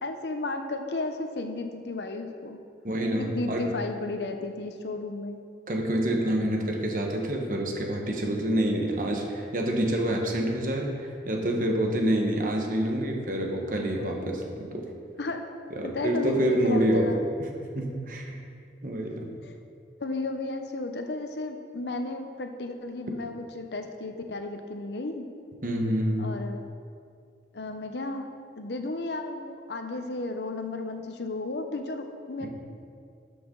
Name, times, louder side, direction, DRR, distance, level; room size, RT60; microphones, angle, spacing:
voice 1, 0.0-2.6 3.2-5.4 13.9-14.5 15.2-15.4 15.8-17.2 19.4-19.5 20.0-25.3 26.2-26.6 27.5-28.3 28.6-32.5, left 2 dB, 75° left, 6 dB, 0.8 m, -33 dB
voice 2, 2.8-3.7 5.7-14.8 15.7-17.1 17.4-18.3 18.8-19.3 25.6-26.3, right 1 dB, 50° right, 1 dB, 1.3 m, -27 dB
12.5 x 6.8 x 3.9 m, 2.3 s
head